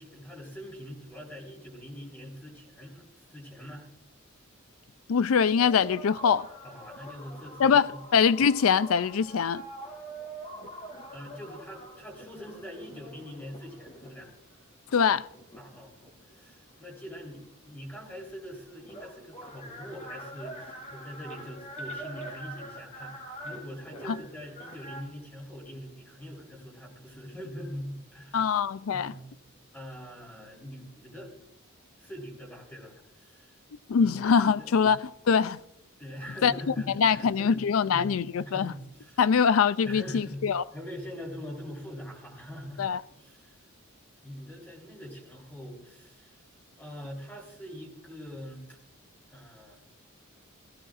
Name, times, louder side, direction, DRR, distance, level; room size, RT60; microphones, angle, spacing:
voice 1, 0.0-3.9 6.6-8.0 11.1-14.3 15.6-28.5 28.9-29.2 29.7-31.4 32.0-33.6 34.0-34.9 36.0-39.3 39.8-42.9 43.1-43.6 44.2-46.4 46.8-48.8 49.3-49.8, equal, 10° left, 3.8 m, -43 dB
voice 2, 5.1-6.5 7.6-9.6 14.9-15.3 28.3-29.1 33.9-35.0 35.3-35.6 36.4-38.7 39.2-40.6 42.8-43.0, left 6 dB, 80° left, 0.4 m, -23 dB
sound 1, 5.6-14.4 15.0-16.7 17.9-18.0 18.2-25.0, right 1 dB, 35° left, 3.9 m, -44 dB
18.0 x 16.5 x 2.5 m
head